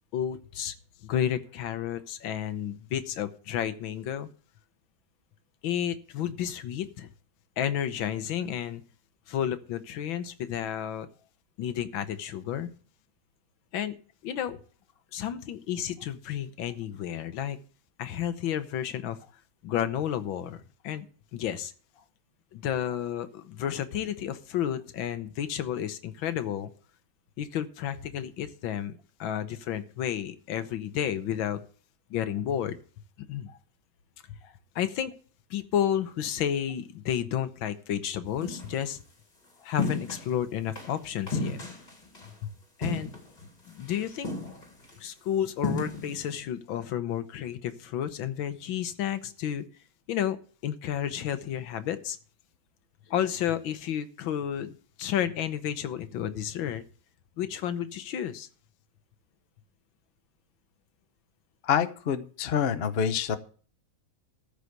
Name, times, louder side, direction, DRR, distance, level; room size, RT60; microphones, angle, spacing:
voice 1, 0.1-0.7 1.0-4.3 5.6-7.1 7.6-8.8 9.3-11.1 11.6-12.7 13.7-14.0 14.2-14.6 15.1-17.6 18.0-19.2 19.6-21.0 21.3-21.7 22.5-26.7 27.4-31.6 32.1-32.8 33.2-33.5 34.7-35.1 35.5-39.0 39.6-41.6 42.8-43.1 43.7-44.3 45.0-49.6 50.1-50.4 50.6-52.2 53.1-54.7 55.0-56.8 57.4-58.5, left 10 dB, 75° left, 12 dB, 1.6 m, -31 dB
sound 1, 38.4-38.7 39.8-40.3 40.7-40.9 41.3-42.3 42.8-43.5 43.8-43.9 44.2-44.9 45.6-46.2, left 3 dB, 20° left, 2.0 m, -32 dB
voice 2, 61.6-63.4, left 8 dB, 50° left, 10 dB, 0.7 m, -26 dB
13.5 x 5.0 x 7.9 m, 0.42 s
omnidirectional pair, 2.2 m